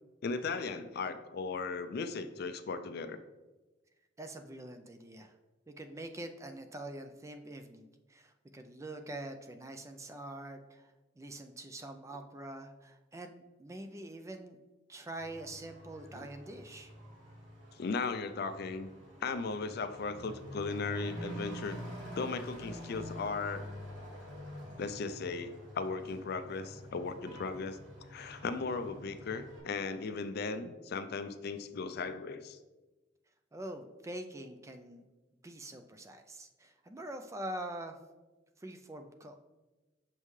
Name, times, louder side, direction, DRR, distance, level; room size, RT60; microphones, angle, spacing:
voice 1, 0.2-3.2 16.1-16.3 17.8-18.9 19.2-21.8 22.2-23.7 24.8-27.8 28.1-32.6, left 4 dB, 55° left, 10 dB, 0.4 m, -37 dB
voice 2, 4.2-5.3 5.7-14.6 14.9-16.9 33.5-35.0 35.4-38.0 38.6-39.4, right 1 dB, 15° right, 6 dB, 0.4 m, -45 dB
Truck / Accelerating revving vroom, 15.2-29.6, equal, 80° right, 2.0 m, -47 dB
6.5 x 5.4 x 3.2 m, 1.1 s
head